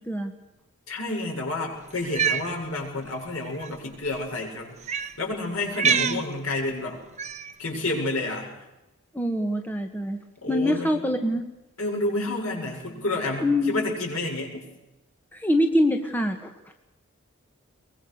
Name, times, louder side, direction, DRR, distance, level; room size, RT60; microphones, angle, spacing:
voice 1, 0.9-7.0 7.6-8.5 10.4-10.9 11.8-14.6, left 2 dB, 75° left, 1 dB, 7.5 m, -30 dB
Cat, 2.0-2.5 3.5-3.7 4.8-5.1 5.7-6.2 7.2-7.5, right 7 dB, 30° right, 1.2 m, -25 dB
voice 2, 5.8-6.2 9.1-10.2 10.5-11.4 13.4-13.8 15.3-16.5, left 1 dB, 10° left, 4 dB, 1.7 m, -24 dB
23.0 x 22.5 x 6.7 m, 0.96 s
head